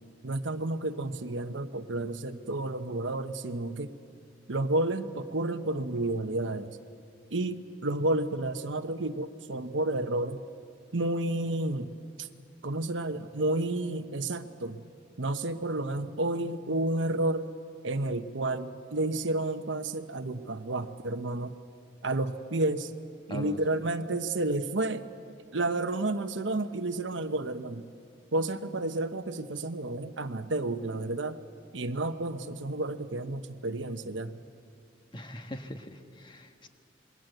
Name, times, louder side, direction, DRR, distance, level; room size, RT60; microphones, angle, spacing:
voice 1, 0.2-3.9 4.5-6.8 7.3-10.4 10.9-11.9 12.2-12.3 12.6-14.8 15.2-17.5 17.8-21.5 22.0-22.9 23.3-25.1 25.5-27.9 28.3-31.4 31.7-34.4, right 2 dB, 90° right, 9 dB, 1.1 m, -31 dB
voice 2, 35.1-36.7, equal, 25° left, 6 dB, 1.4 m, -40 dB
26.5 x 21.5 x 8.0 m, 2.4 s
head